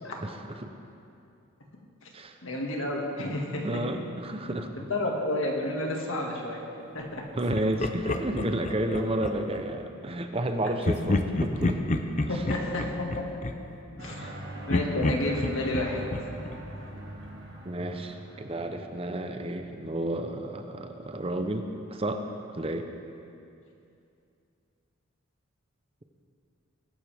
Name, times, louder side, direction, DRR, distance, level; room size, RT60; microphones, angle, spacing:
voice 1, 0.2-0.7 2.1-2.4 3.6-4.9 7.3-11.8 12.3-12.4 14.2-14.3 17.6-22.3 22.5-22.9, right 1 dB, 30° right, 6 dB, 0.7 m, -31 dB
voice 2, 2.4-3.8 4.8-6.6 6.9-7.2 12.3-13.1 14.0-16.0, left 1 dB, 70° left, 0 dB, 2.0 m, -31 dB
Laughter, 7.5-9.6 10.8-14.3 14.7-17.4, left 2 dB, 35° left, 0.6 m, -30 dB
sound 1, 14.0-19.3, right 1 dB, 55° right, 2.0 m, -42 dB
21.5 x 11.0 x 3.5 m, 2.5 s
head